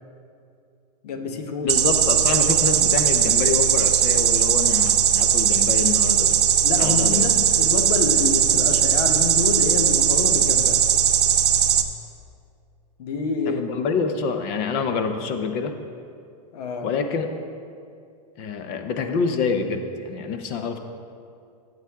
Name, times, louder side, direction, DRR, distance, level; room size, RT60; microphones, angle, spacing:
voice 1, 1.0-1.8 6.6-10.8 13.0-13.7 16.5-16.9, left 4 dB, 70° left, 5 dB, 1.0 m, -27 dB
voice 2, 1.6-7.3 13.5-15.7 16.8-17.3 18.4-20.8, left 5 dB, 25° left, 7 dB, 0.5 m, -26 dB
sound 1, 1.7-11.8, right 9 dB, 75° right, 0.8 m, -19 dB
14.0 x 7.8 x 3.5 m, 2.4 s
supercardioid pair, 175°, 21 cm